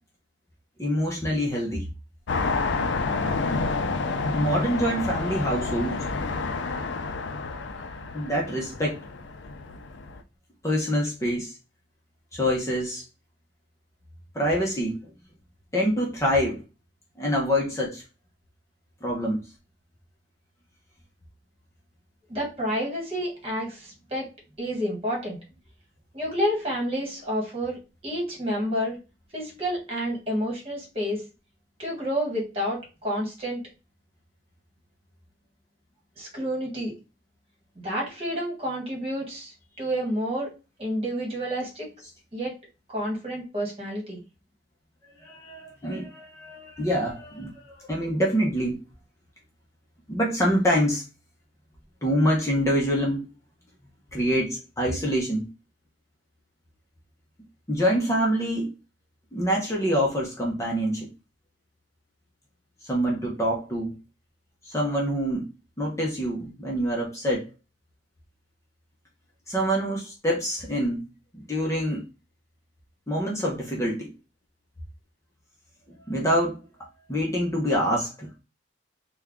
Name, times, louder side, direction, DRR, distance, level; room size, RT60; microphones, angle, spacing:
voice 1, 0.8-1.8 4.3-6.1 8.1-9.0 10.6-11.6 12.3-13.0 14.3-15.0 15.7-16.6 17.2-18.0 19.0-19.4 45.2-48.8 50.1-51.0 52.0-53.3 54.1-55.5 57.7-58.7 59.3-61.1 62.8-63.9 64.6-65.5 65.8-67.5 69.5-71.1 71.3-72.0 73.1-74.1 76.1-76.5 76.8-78.4, equal, 15° left, -2 dB, 0.7 m, -26 dB
sound 1, 2.3-10.2, left 3 dB, 85° left, 0.4 m, -29 dB
voice 2, 22.3-24.3 24.6-25.4 26.1-27.8 28.0-29.0 29.3-31.2 31.8-33.6 36.2-36.9 37.8-40.5 40.8-41.9 42.3-42.5 42.9-44.2, equal, 35° right, -2 dB, 1.5 m, -29 dB
3.4 x 2.3 x 3.5 m, 0.30 s
head